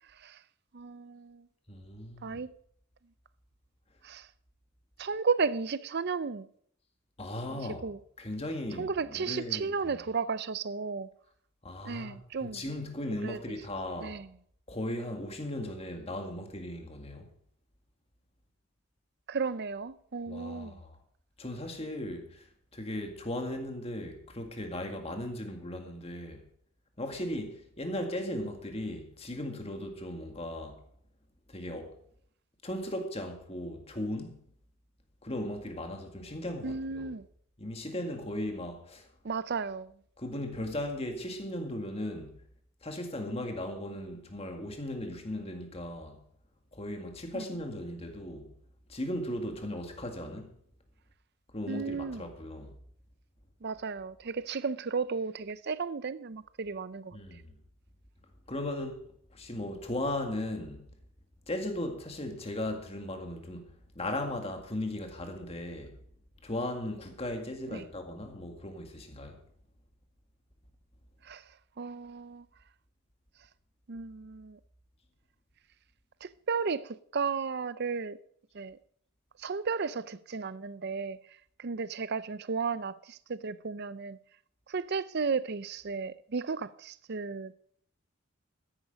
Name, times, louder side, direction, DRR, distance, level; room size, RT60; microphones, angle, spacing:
voice 1, 0.7-1.5 2.2-2.5 4.0-4.3 5.0-6.5 7.5-8.0 8.8-11.1 11.8-12.6 13.1-13.6 14.0-14.3 19.3-20.8 36.6-37.3 39.2-39.9 47.3-47.5 51.7-52.3 53.6-57.4 67.7-67.8 71.2-71.4 71.8-72.5 73.9-74.6 76.2-78.2 78.5-78.8 79.4-81.2 81.6-84.2 84.7-87.6, right 5 dB, 50° right, 0.6 m, -34 dB
voice 2, 1.7-2.4 7.2-7.9 8.2-10.0 11.6-14.2 14.7-17.3 20.3-20.9 21.4-22.4 22.7-26.4 27.0-30.8 31.5-31.9 32.6-34.4 35.2-37.1 37.6-39.1 40.2-42.3 42.8-46.2 46.7-48.5 48.9-50.5 51.5-52.7 57.1-57.6 58.5-59.0 59.3-60.9 61.5-63.7 64.0-66.0 66.4-69.4, left 1 dB, 30° left, 2.0 m, -37 dB
13.0 x 10.5 x 5.2 m
head